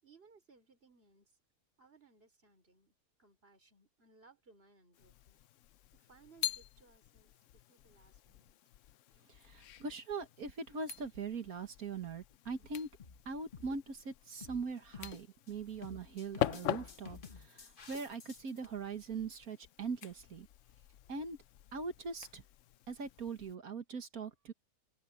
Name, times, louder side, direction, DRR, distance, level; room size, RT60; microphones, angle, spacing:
voice 1, 0.0-1.4 1.8-2.9 3.2-5.4 5.9-8.6, right 4 dB, 35° right, 4.6 m, -64 dB
sound 1, 4.9-23.6, left 12 dB, 70° left, 0.8 m, -45 dB
voice 2, 9.3-12.9 13.3-20.5 21.1-21.4 21.7-22.4 22.9-24.5, right 4 dB, 60° right, 2.0 m, -41 dB
sound 2, 12.3-12.4 13.0-13.2 13.5-13.8 14.4-14.7 14.9-15.5 15.8-18.7, left 5 dB, 35° left, 1.3 m, -51 dB
omnidirectional pair, 1.8 m